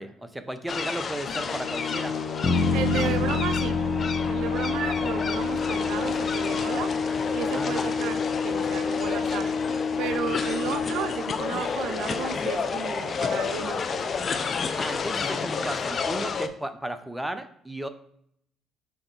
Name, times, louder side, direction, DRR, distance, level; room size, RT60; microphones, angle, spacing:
voice 1, 0.0-2.2 7.5-8.0 14.7-17.9, right 1 dB, 5° right, 9 dB, 0.7 m, -34 dB
sound 1, 0.7-16.5, left 5 dB, 45° left, 0.6 m, -31 dB
sound 2, 1.3-12.5, left 5 dB, 75° left, 2.3 m, -30 dB
sound 3, 2.4-6.5, left 3 dB, 25° left, 1.2 m, -29 dB
voice 2, 2.7-3.8 4.3-6.9 7.3-9.5 10.0-13.8, right 9 dB, 75° right, 11 dB, 0.4 m, -33 dB
6.0 x 3.9 x 4.0 m, 0.70 s
supercardioid pair, 70°, 0 cm